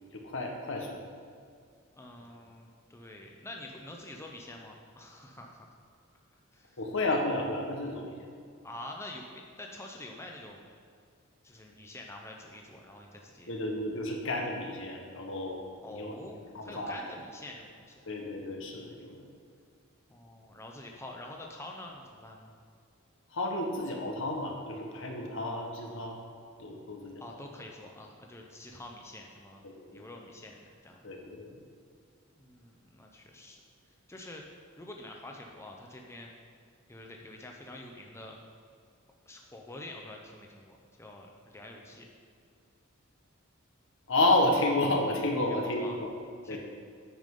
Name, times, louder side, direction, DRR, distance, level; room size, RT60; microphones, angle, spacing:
voice 1, 0.1-1.0 6.8-8.3 13.5-15.6 15.9-16.1 16.5-17.0 18.1-19.3 23.3-26.2 26.6-27.2 29.7-30.0 31.0-31.5 44.1-46.1 46.5-46.6, left 2 dB, 65° left, 1 dB, 1.5 m, -31 dB
voice 2, 1.9-5.8 6.5-6.8 8.6-10.6 11.4-13.5 15.8-18.0 20.1-22.5 27.2-29.6 29.9-31.0 32.4-33.6 34.1-34.4 34.8-36.3 36.9-38.4 39.3-42.1 45.5-46.0 46.4-46.6, left 1 dB, 15° left, 0 dB, 0.8 m, -46 dB
10.5 x 9.1 x 3.9 m, 2.2 s
head